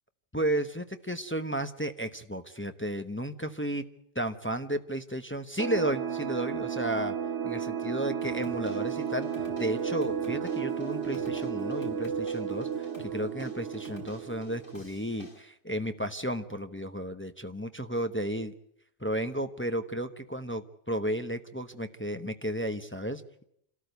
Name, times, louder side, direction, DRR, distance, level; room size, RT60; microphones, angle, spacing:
voice 1, 0.3-3.8 4.1-7.2 7.4-18.5 19.0-23.4, right 1 dB, 10° left, 7 dB, 0.8 m, -33 dB
sound 1, 5.6-14.9, right 7 dB, 85° right, 1.4 m, -33 dB
sound 2, 8.2-15.4, left 1 dB, 50° left, 3.3 m, -52 dB
27.5 x 13.5 x 8.0 m, 0.75 s
omnidirectional pair, 1.2 m